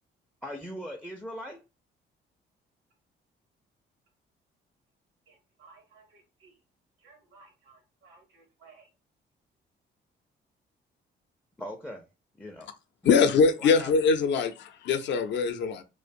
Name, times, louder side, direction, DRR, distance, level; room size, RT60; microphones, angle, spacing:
voice 1, 0.4-1.6 11.6-12.1 12.4-12.7 13.0-13.2 13.6-13.9, equal, 5° left, 0.4 m, -39 dB
voice 2, 5.3-6.6 7.0-8.9, right 4 dB, 85° right, 0.9 m, -58 dB
voice 3, 13.0-15.8, left 5 dB, 65° left, 0.5 m, -23 dB
2.5 x 2.1 x 2.6 m
cardioid pair, 90°, 20 cm